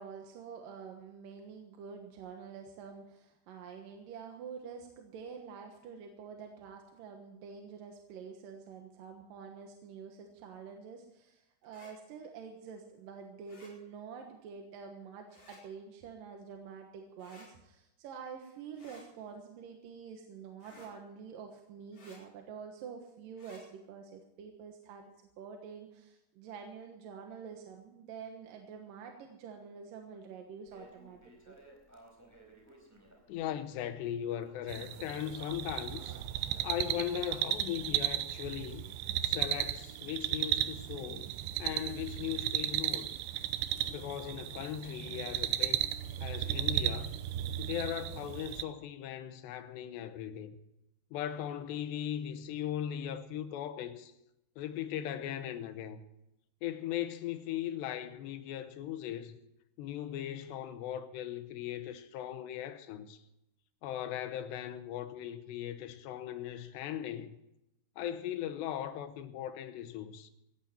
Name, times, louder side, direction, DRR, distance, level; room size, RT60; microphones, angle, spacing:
voice 1, 0.0-25.0 25.4-31.6, right 6 dB, 65° right, 2.6 m, -47 dB
sound 1, 11.6-11.9 13.5-13.7 15.3-15.6 17.2-17.5 18.7-19.1 20.6-20.9 21.9-22.2 23.3-23.6, left 1 dB, 35° left, 5.7 m, -56 dB
Crackle, 30.7-37.6, right 1 dB, 5° right, 3.6 m, -57 dB
voice 2, 33.3-36.2 36.6-38.9 39.2-41.3 41.6-43.1 43.9-45.8 46.2-47.2 47.6-50.6 51.1-54.1 54.6-56.0 56.6-59.4 59.8-63.2 63.8-67.4 68.0-70.3, left 10 dB, 80° left, 3.2 m, -38 dB
sound 2, 34.7-48.6, right 12 dB, 85° right, 3.1 m, -35 dB
18.0 x 14.5 x 4.4 m
omnidirectional pair, 5.0 m